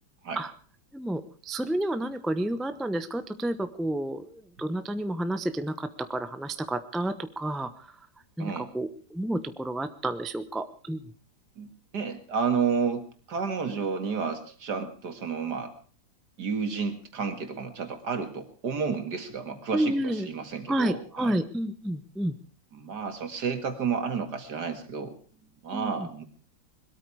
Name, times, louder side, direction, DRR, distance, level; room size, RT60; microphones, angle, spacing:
voice 1, 0.9-7.7 8.4-11.0 19.7-20.3 20.7-22.3 25.7-26.1, right 1 dB, ahead, 11 dB, 0.3 m, -30 dB
voice 2, 8.4-8.7 11.6-15.7 16.4-21.4 22.7-25.2 25.6-26.2, right 6 dB, 55° right, 7 dB, 2.5 m, -31 dB
21.5 x 13.0 x 4.8 m, 0.43 s
omnidirectional pair, 2.1 m